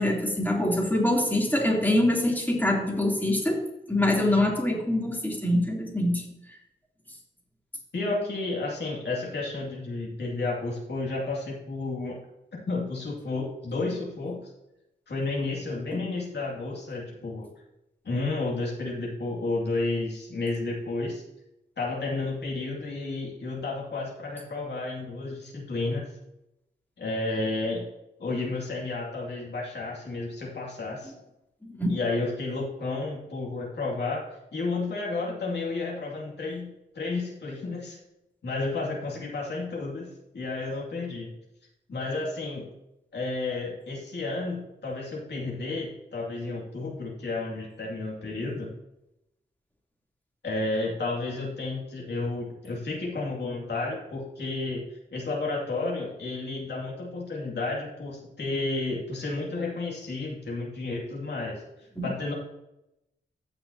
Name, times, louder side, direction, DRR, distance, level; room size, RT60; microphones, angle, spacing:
voice 1, 0.0-3.6 3.9-6.2 31.6-31.9 61.9-62.1, left 1 dB, 10° left, -2 dB, 3.2 m, -24 dB
voice 2, 7.9-12.2 12.7-14.5 15.1-17.5 18.0-21.2 21.8-26.1 27.0-27.9 28.2-31.1 31.9-38.0 38.4-40.1 40.3-41.3 41.9-42.7 43.1-48.7 50.4-62.3, left 3 dB, 65° left, -4 dB, 2.5 m, -31 dB
15.5 x 5.8 x 2.9 m, 0.89 s
cardioid pair, 70°, 19 cm